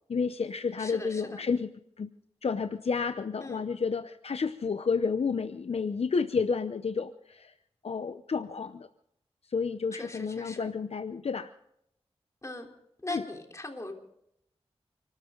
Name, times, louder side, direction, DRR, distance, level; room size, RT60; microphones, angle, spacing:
voice 1, 0.1-1.7 2.0-2.1 2.4-7.5 7.8-8.9 9.5-11.5 13.1-13.2, left 5 dB, 70° left, 9 dB, 0.7 m, -30 dB
voice 2, 0.8-1.4 3.4-3.6 10.0-10.7 12.4-12.7 13.0-13.9, left 2 dB, 30° left, 2 dB, 3.5 m, -39 dB
29.5 x 13.0 x 3.8 m, 0.75 s
wide cardioid pair, 65°, 11 cm